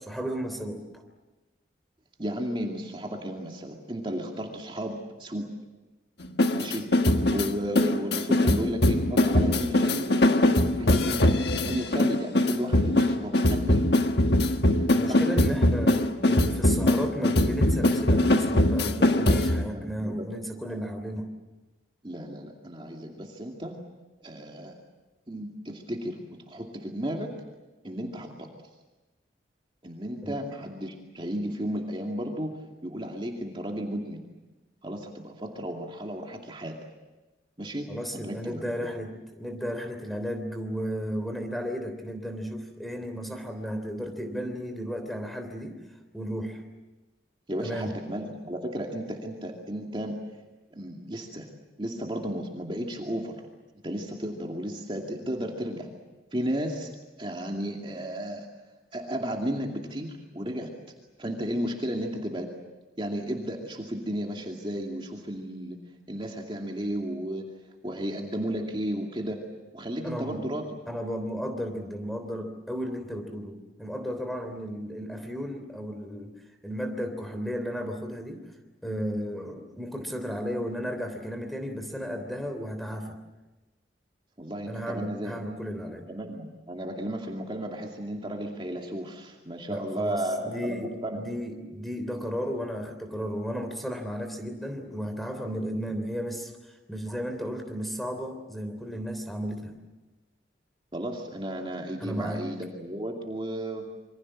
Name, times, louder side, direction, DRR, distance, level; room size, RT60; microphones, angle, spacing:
voice 1, 0.1-0.8 14.9-21.3 30.2-30.4 37.9-45.7 46.1-46.6 47.6-48.0 70.0-70.5 70.9-76.3 76.6-78.5 78.8-83.2 84.7-86.1 89.7-90.2 90.4-96.5 96.9-99.8 102.0-102.4, equal, ahead, 5 dB, 3.3 m, -34 dB
voice 2, 2.2-5.5 6.5-6.9 7.3-11.2 11.6-13.8 15.1-15.2 19.7-20.3 22.0-23.7 24.2-24.7 25.3-26.2 26.5-27.3 27.8-28.5 29.8-34.2 34.8-36.7 37.6-38.9 47.5-50.1 50.7-51.5 51.8-53.4 53.8-55.9 56.3-56.9 57.2-58.5 58.9-60.7 61.2-62.5 63.0-65.8 66.1-67.5 67.8-69.4 69.7-70.7 84.4-85.4 86.1-91.2 100.9-103.8, equal, 25° right, 1 dB, 2.5 m, -34 dB
sound 1, 6.2-19.7, left 1 dB, 60° left, 1.5 m, -22 dB
27.5 x 24.0 x 7.5 m, 1.1 s
head